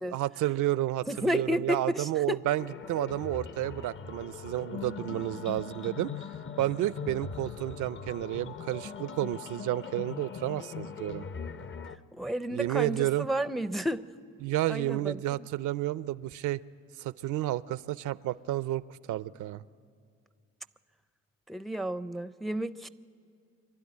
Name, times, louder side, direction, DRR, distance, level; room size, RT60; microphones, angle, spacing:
voice 1, 0.0-6.1 6.6-11.3 12.5-13.3 14.4-16.6 17.0-19.6, right 14 dB, 80° right, 17 dB, 0.5 m, -31 dB
voice 2, 1.1-2.4 12.1-14.1 14.7-15.4 21.5-22.9, equal, ahead, 14 dB, 0.4 m, -32 dB
sound 1, 2.6-12.0, left 6 dB, 40° left, 0.7 m, -41 dB
25.5 x 12.0 x 9.7 m, 2.3 s
cardioid pair, 90°, 30 cm